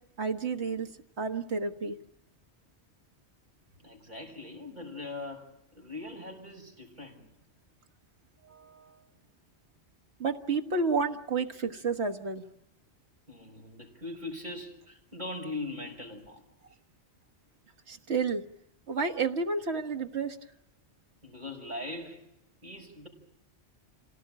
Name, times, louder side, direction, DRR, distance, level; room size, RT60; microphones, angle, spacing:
voice 1, 0.2-0.9 1.2-2.0 10.2-12.4 17.9-18.4 18.9-20.4, right 4 dB, 75° right, 4 dB, 1.7 m, -30 dB
voice 2, 3.8-7.3 8.4-9.1 13.3-16.4 21.2-22.3 22.6-23.1, left 2 dB, 40° right, 1 dB, 5.9 m, -41 dB
26.5 x 18.0 x 8.9 m, 0.78 s
omnidirectional pair, 1.1 m